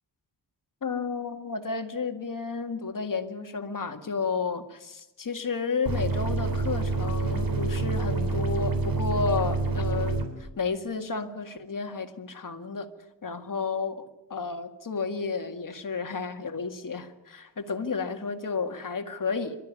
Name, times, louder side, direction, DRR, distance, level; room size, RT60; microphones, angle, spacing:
voice 1, 0.8-12.9 13.2-19.6, left 4 dB, 50° left, 6 dB, 2.0 m, -32 dB
sound 1, 5.9-10.3, right 3 dB, 50° right, 3.5 m, -27 dB
26.5 x 13.0 x 9.8 m, 0.99 s
wide cardioid pair, 140°, 42 cm